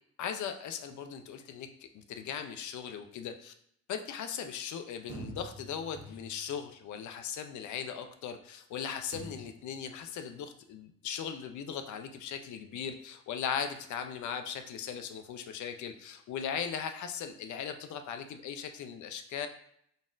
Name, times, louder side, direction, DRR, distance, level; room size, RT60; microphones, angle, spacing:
voice 1, 0.2-3.5 3.9-19.5, left 7 dB, 75° left, 7 dB, 0.6 m, -38 dB
sound 1, 5.1-6.6 9.1-9.7, right 1 dB, 60° right, 1.0 m, -46 dB
4.0 x 3.6 x 2.5 m, 0.69 s
cardioid pair, 90°, 30 cm